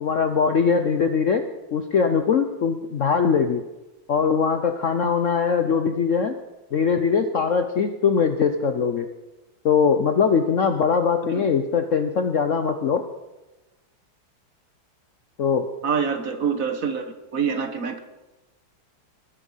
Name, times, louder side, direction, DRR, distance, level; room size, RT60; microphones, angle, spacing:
voice 1, 0.0-3.6 4.1-6.4 6.7-9.1 9.6-13.0 15.4-15.7, left 6 dB, 60° left, 8 dB, 0.9 m, -21 dB
voice 2, 15.8-18.0, right 6 dB, 50° right, 8 dB, 1.4 m, -26 dB
21.0 x 10.0 x 5.6 m, 1.1 s
omnidirectional pair, 2.1 m